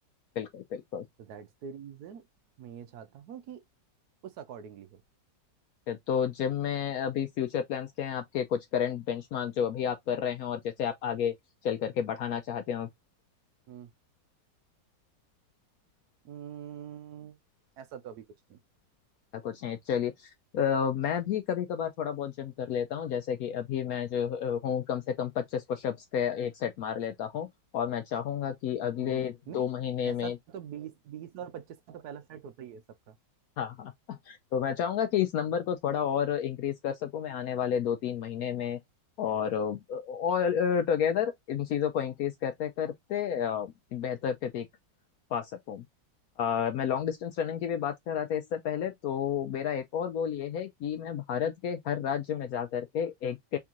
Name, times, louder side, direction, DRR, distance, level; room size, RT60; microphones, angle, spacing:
voice 1, 0.4-1.0 5.9-11.3 11.6-12.9 19.3-30.4 33.6-38.8 39.2-44.7 45.3-45.8 46.4-53.6, left 8 dB, 70° left, 0.9 m, -31 dB
voice 2, 1.3-2.3 2.6-3.6 4.2-5.0 13.7-13.9 16.2-17.4 17.8-18.2 18.5-18.6 29.0-29.6 30.0-33.1, right 8 dB, 70° right, 1.0 m, -44 dB
3.7 x 3.6 x 2.8 m
omnidirectional pair, 1.9 m